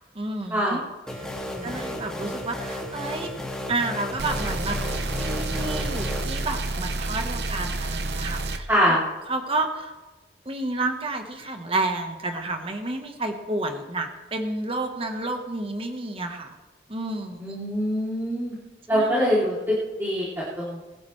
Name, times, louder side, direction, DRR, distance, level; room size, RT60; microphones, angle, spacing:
voice 1, 0.1-0.8 1.1-1.3 1.6-3.3 3.7-9.0 9.3-9.9 10.4-16.6 16.9-17.4 18.9-19.1, right 2 dB, 30° right, 5 dB, 1.3 m, -30 dB
sound 1, 1.1-6.2, left 1 dB, 5° left, 2.3 m, -33 dB
sound 2, 4.2-8.6, right 2 dB, 70° right, 1.0 m, -29 dB
voice 2, 8.7-9.0 17.4-18.6 18.9-19.7 20.0-20.3 20.6-20.8, equal, 15° right, -8 dB, 3.1 m, -23 dB
21.0 x 12.5 x 3.3 m, 1.2 s
head